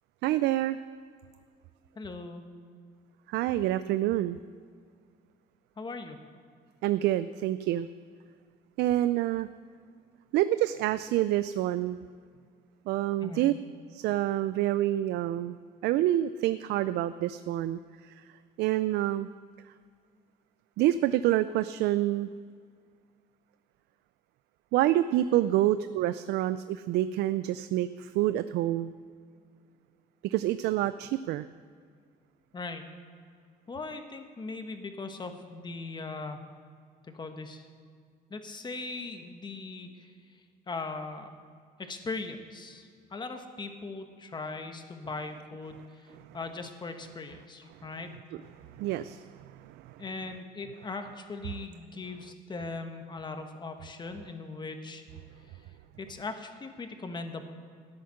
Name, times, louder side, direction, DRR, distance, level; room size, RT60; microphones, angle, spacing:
voice 1, 0.2-0.8 3.3-4.4 6.8-7.9 8.8-9.5 10.3-12.0 12.9-13.5 13.9-15.6 15.8-18.1 18.6-19.3 20.8-22.3 24.7-28.9 30.2-31.5 48.8-49.3 49.6-50.0, right 14 dB, 80° right, 13 dB, 0.4 m, -27 dB
voice 2, 2.0-2.4 5.8-6.2 13.2-13.5 32.5-32.8 33.7-36.4 37.1-37.6 38.3-40.1 40.7-41.3 41.8-48.1 50.0-55.0 56.0-57.4, left 3 dB, 25° left, 6 dB, 1.4 m, -39 dB
13.0 x 10.5 x 6.4 m, 2.1 s
cardioid pair, 110°, 17 cm